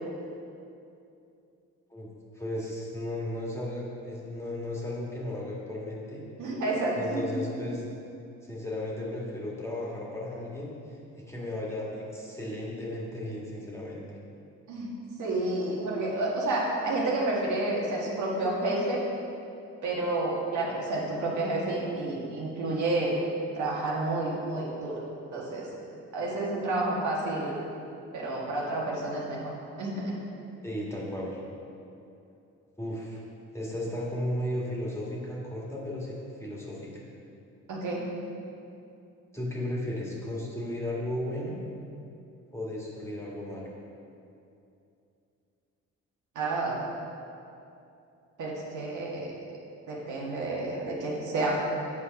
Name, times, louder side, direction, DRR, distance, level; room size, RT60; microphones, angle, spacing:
voice 1, 2.3-6.3 7.0-7.8 8.4-11.0 11.3-14.0 30.6-31.4 32.8-33.2 33.5-37.1 39.3-41.6 42.5-43.7, left 1 dB, 10° left, -5 dB, 1.9 m, -35 dB
voice 2, 6.4-7.4 14.7-14.9 15.2-19.0 19.8-23.1 23.6-25.0 25.3-25.7 26.1-27.6 28.1-29.5 29.8-30.2 37.7-38.0 46.4-46.8 48.4-49.3 49.9-51.5, right 2 dB, 75° right, -4 dB, 1.8 m, -30 dB
8.2 x 5.0 x 5.3 m, 2.7 s
cardioid pair, 90°, 30 cm